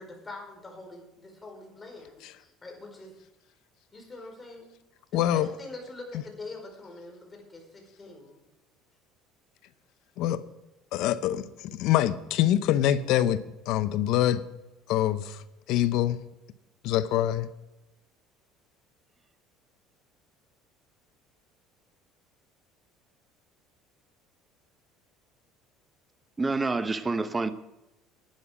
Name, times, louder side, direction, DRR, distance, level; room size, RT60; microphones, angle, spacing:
voice 1, 0.0-3.2 3.9-4.8 5.1-8.4, left 2 dB, 25° left, 2 dB, 4.9 m, -44 dB
voice 2, 5.1-5.5 10.2-10.4 10.9-11.4 11.7-13.4 13.7-14.4 14.9-15.4 15.7-16.2 16.8-17.5, left 12 dB, 70° left, 15 dB, 0.7 m, -24 dB
voice 3, 26.4-27.5, right 3 dB, 20° right, 12 dB, 0.9 m, -27 dB
11.5 x 10.5 x 5.1 m, 0.96 s
supercardioid pair, 85°, 0 cm